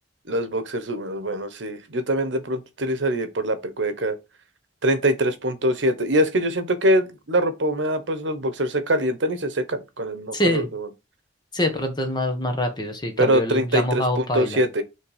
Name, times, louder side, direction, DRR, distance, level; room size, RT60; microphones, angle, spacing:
voice 1, 0.3-4.1 4.8-10.9 13.2-14.8, right 1 dB, 80° right, 1.0 m, -23 dB
voice 2, 10.3-10.7 11.5-14.6, left 1 dB, 25° left, 1.3 m, -25 dB
5.7 x 3.4 x 4.9 m
head